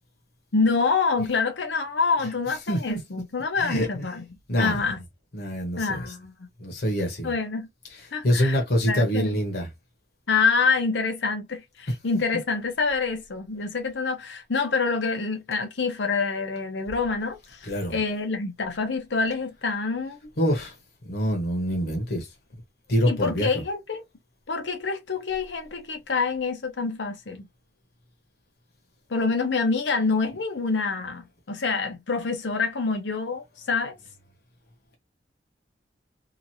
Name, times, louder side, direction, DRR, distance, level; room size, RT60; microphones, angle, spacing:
voice 1, 0.5-4.2 4.6-5.0 5.8-6.3 7.2-7.7 8.1-8.6 8.9-9.4 10.3-20.2 23.1-24.0 24.5-27.4 29.1-34.0, left 4 dB, 80° left, 0.8 m, -26 dB
voice 2, 2.7-3.0 3.6-4.0 4.5-4.8 5.3-6.1 6.6-7.3 7.9-9.7 17.6-18.0 20.4-20.8 21.0-22.3 22.9-23.6, equal, 60° left, 1.0 m, -25 dB
2.9 x 2.5 x 2.7 m
head